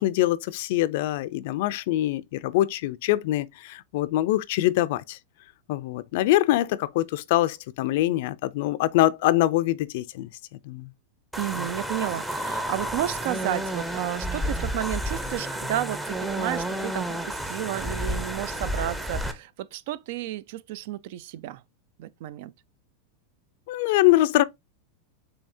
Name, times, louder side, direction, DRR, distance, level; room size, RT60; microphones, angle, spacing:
voice 1, 0.0-5.2 5.7-10.3 10.6-10.9 23.7-24.4, left 15 dB, 65° left, 0.4 m, -24 dB
sound 1, 11.3-19.3, equal, 10° right, 0.6 m, -31 dB
voice 2, 11.4-21.6 22.0-22.5, right 13 dB, 60° right, 0.4 m, -32 dB
7.0 x 2.8 x 2.6 m
supercardioid pair, 140°, 0 cm